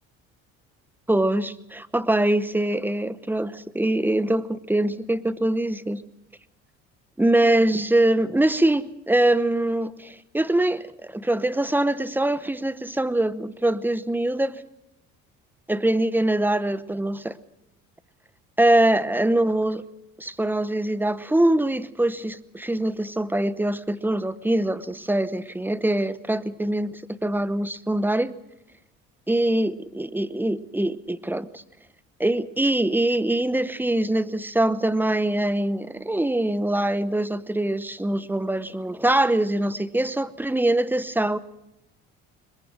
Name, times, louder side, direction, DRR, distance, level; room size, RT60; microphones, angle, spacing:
voice 1, 1.1-6.0 7.2-14.6 15.7-17.4 18.6-19.8 20.2-28.3 29.3-31.6 32.2-41.4, right 1 dB, 5° right, 0.9 m, -23 dB
22.0 x 21.0 x 6.1 m
supercardioid pair, 95°, 31 cm